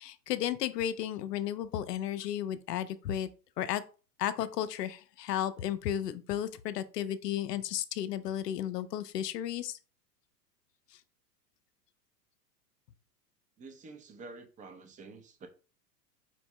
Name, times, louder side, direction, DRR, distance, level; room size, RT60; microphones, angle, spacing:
voice 1, 0.0-3.3 3.6-3.8 4.2-9.8, left 11 dB, 75° left, 0.7 m, -33 dB
voice 2, 13.6-15.5, right 3 dB, 15° right, 0.6 m, -49 dB
4.5 x 3.4 x 3.0 m
hypercardioid pair, 100°, 49 cm